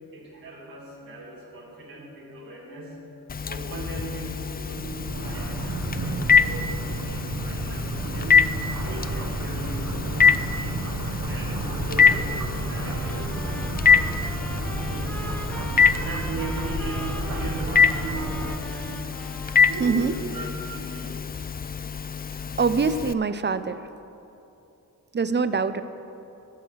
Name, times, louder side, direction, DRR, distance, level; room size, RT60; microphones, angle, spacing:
voice 1, 0.1-3.0 3.4-19.1 19.7-21.3, right 2 dB, 85° right, -6 dB, 2.6 m, -39 dB
Telephone, 3.3-23.1, left 6 dB, 30° left, 0.4 m, -25 dB
sound 1, 4.6-18.6, right 3 dB, 55° right, 1.3 m, -32 dB
Trumpet, 12.8-20.2, equal, 5° left, 0.8 m, -41 dB
voice 2, 19.8-20.1 22.6-23.7 25.1-25.8, right 5 dB, 30° right, 12 dB, 0.6 m, -23 dB
16.0 x 6.5 x 6.3 m, 2.8 s
wide cardioid pair, 85°, 34 cm